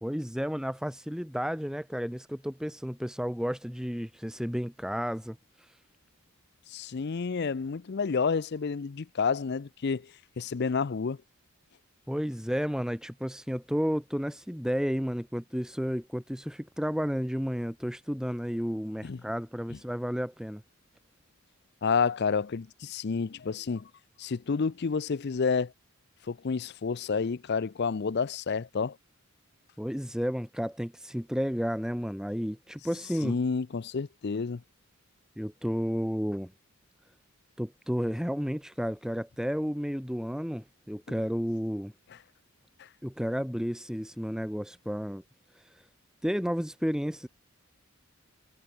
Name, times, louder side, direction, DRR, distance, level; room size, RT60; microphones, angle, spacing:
voice 1, 0.0-5.4 12.1-20.6 29.8-33.4 35.4-36.5 37.6-41.9 43.0-45.2 46.2-47.3, equal, 5° right, 2.3 m, -32 dB
voice 2, 6.7-10.1 10.4-11.2 19.0-19.2 21.8-23.9 24.2-25.7 26.3-29.0 33.2-34.6 42.8-42.9, left 5 dB, 50° left, 0.5 m, -29 dB
head